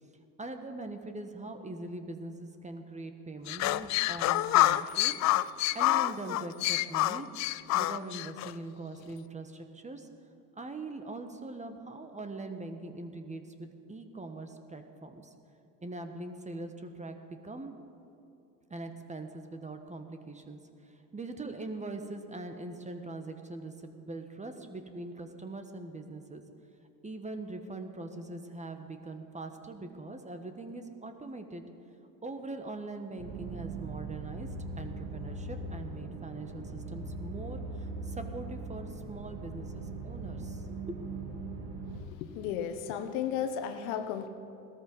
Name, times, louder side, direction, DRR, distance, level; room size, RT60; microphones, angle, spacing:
voice 1, 0.4-5.1 5.7-7.3 7.7-10.1 10.5-15.3 15.8-17.2 17.4-17.7 18.7-26.4 27.0-31.6 32.2-34.5 34.8-41.0, right 2 dB, 15° right, 7 dB, 1.4 m, -42 dB
sound 1, 3.5-8.5, left 16 dB, 40° left, 0.5 m, -27 dB
sound 2, 33.2-42.0, right 3 dB, 50° right, 2.7 m, -40 dB
voice 2, 42.1-44.3, left 8 dB, 65° left, 8 dB, 1.5 m, -34 dB
18.0 x 13.5 x 5.5 m, 2.8 s
hypercardioid pair, 90°, 47 cm